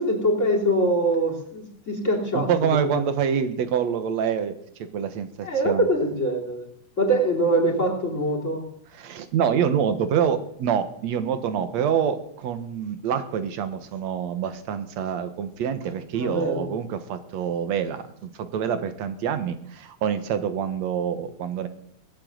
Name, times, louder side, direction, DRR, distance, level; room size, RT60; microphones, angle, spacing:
voice 1, 0.0-2.5 2.9-3.0 5.4-6.7 7.0-8.7 16.1-16.7, right 1 dB, 25° left, 2 dB, 3.4 m, -23 dB
voice 2, 2.3-4.5 4.9-5.9 9.0-21.7, right 8 dB, 65° right, 10 dB, 2.5 m, -26 dB
19.5 x 7.7 x 9.0 m, 0.71 s
omnidirectional pair, 3.4 m